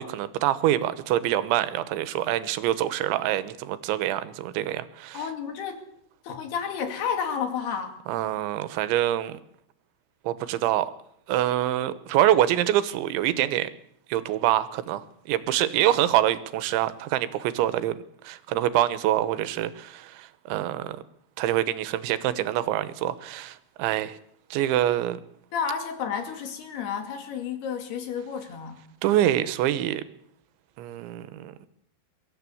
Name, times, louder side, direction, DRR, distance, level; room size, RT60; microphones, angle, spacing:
voice 1, 0.0-5.2 8.1-9.4 10.3-10.9 11.3-13.7 14.1-18.0 18.2-21.0 21.4-24.2 24.5-25.2 29.0-30.0 30.8-31.7, right 13 dB, 85° right, 14 dB, 3.3 m, -25 dB
voice 2, 5.1-5.9 6.2-8.0 25.5-28.8, left 7 dB, 60° left, 6 dB, 4.1 m, -31 dB
23.0 x 14.5 x 8.5 m, 0.71 s
omnidirectional pair, 5.3 m